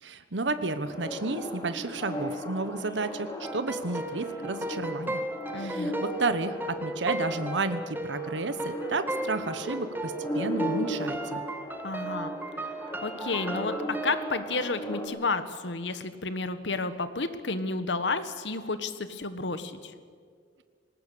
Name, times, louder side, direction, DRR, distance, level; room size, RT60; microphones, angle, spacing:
voice 1, 0.0-5.2 5.6-11.4, right 3 dB, 80° right, 11 dB, 1.2 m, -32 dB
sound 1, 0.8-15.1, equal, 20° left, 3.2 m, -37 dB
sound 2, 3.4-14.4, right 1 dB, 10° right, 1.4 m, -36 dB
voice 2, 5.5-5.9 11.8-12.3 12.6-12.7 13.0-19.9, left 3 dB, 75° left, 12 dB, 1.5 m, -31 dB
19.5 x 19.0 x 8.5 m, 2.1 s
head